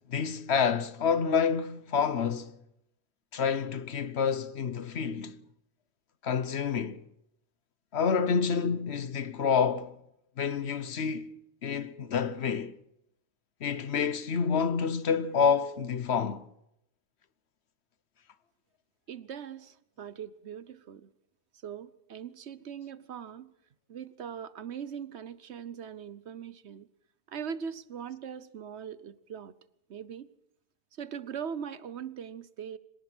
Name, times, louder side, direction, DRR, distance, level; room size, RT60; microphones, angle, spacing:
voice 1, 0.1-2.6 3.3-5.4 6.2-7.0 7.9-10.0 10.4-11.4 11.6-12.8 13.6-16.5, left 6 dB, 75° left, 1.2 m, -28 dB
voice 2, 19.1-21.1 21.6-23.5 23.9-26.9 27.3-29.5 29.9-30.3 31.0-32.8, right 7 dB, 80° right, 1.2 m, -40 dB
25.5 x 18.5 x 6.2 m
omnidirectional pair, 1.1 m